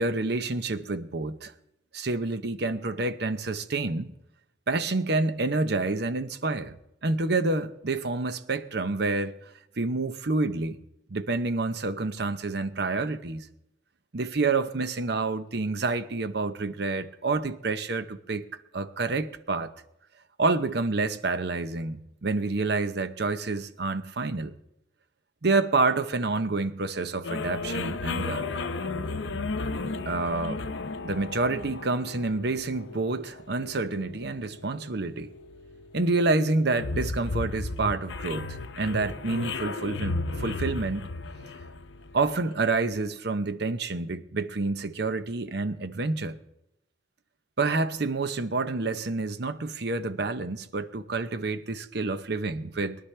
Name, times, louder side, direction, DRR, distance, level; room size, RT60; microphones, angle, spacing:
voice 1, 0.0-1.5 1.9-4.1 4.7-6.8 7.0-9.3 9.8-10.8 11.1-13.5 14.1-18.4 18.7-19.7 20.4-24.5 25.4-28.6 30.1-30.6 31.0-35.3 35.9-41.1 42.1-46.4 47.6-53.0, right 3 dB, 65° right, 0.8 m, -28 dB
sound 1, 27.2-42.6, left 3 dB, 90° left, 0.7 m, -34 dB
22.5 x 11.5 x 3.3 m
head